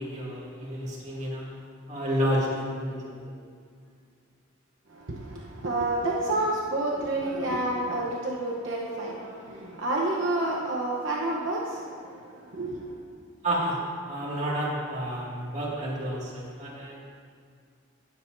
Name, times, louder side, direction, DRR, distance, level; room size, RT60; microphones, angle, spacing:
voice 1, 0.0-1.6 1.9-3.4 13.4-17.0, equal, 35° right, -6 dB, 2.1 m, -30 dB
voice 2, 4.9-13.0, right 2 dB, 60° right, -3 dB, 1.0 m, -29 dB
18.5 x 7.4 x 2.7 m, 2.1 s
head